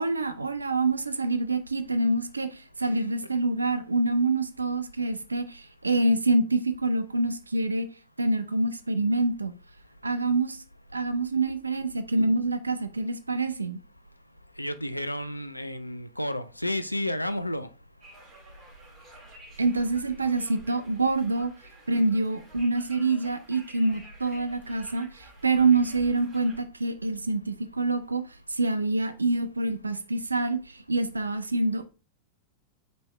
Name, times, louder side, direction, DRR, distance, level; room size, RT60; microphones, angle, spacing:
voice 1, 0.0-7.9 8.2-9.5 10.0-10.6 10.9-13.8 19.6-21.5 21.9-28.2 28.5-31.9, right 2 dB, 80° right, 0.4 m, -26 dB
voice 2, 14.6-17.7, left 1 dB, 85° left, 0.3 m, -31 dB
Conversation, 18.0-26.6, right 2 dB, 30° right, 1.7 m, -50 dB
5.2 x 3.1 x 3.1 m
figure-of-eight pair, 90°, 0 cm